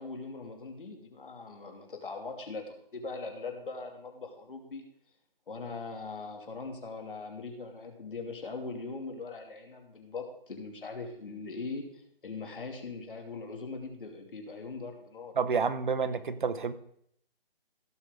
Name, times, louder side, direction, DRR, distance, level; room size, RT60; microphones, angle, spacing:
voice 1, 0.0-4.9 5.5-15.3, left 3 dB, 60° left, 3 dB, 2.6 m, -41 dB
voice 2, 15.4-16.7, right 5 dB, 55° right, 11 dB, 0.9 m, -29 dB
16.5 x 6.5 x 3.8 m, 0.69 s
hypercardioid pair, 170°, 29 cm